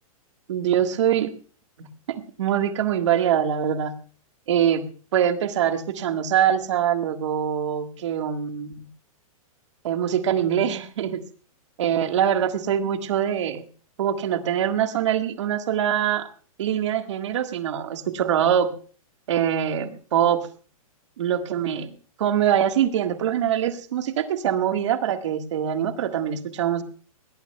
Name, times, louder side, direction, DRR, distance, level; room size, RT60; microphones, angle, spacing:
voice 1, 0.5-1.3 1.8-3.9 4.5-4.9 5.1-8.9 9.8-11.2 11.8-13.6 14.0-16.3 16.6-18.7 19.3-20.5 21.2-21.9 22.2-26.8, right 9 dB, 55° right, 7 dB, 1.6 m, -23 dB
22.5 x 18.0 x 2.3 m, 0.41 s
hypercardioid pair, 175°, 19 cm